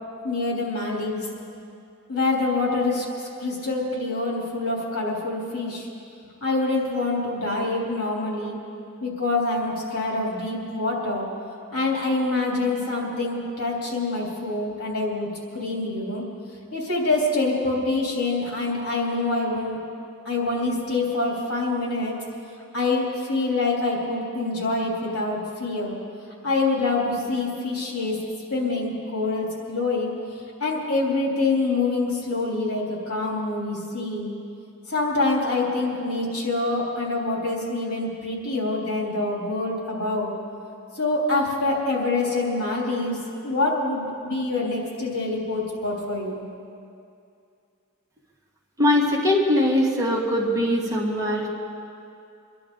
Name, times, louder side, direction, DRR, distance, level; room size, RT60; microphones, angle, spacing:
voice 1, 0.2-1.2 2.1-3.0 3.4-5.9 6.4-8.6 9.0-11.3 11.7-15.3 15.5-16.2 16.7-19.8 20.2-22.2 22.7-25.9 26.4-28.2 28.5-30.1 30.6-34.3 34.9-40.3 40.9-43.2 43.4-46.4, left 2 dB, 75° left, -3 dB, 3.4 m, -25 dB
voice 2, 48.8-51.5, left 1 dB, 15° right, -3 dB, 1.7 m, -21 dB
24.5 x 11.5 x 3.9 m, 2.5 s
head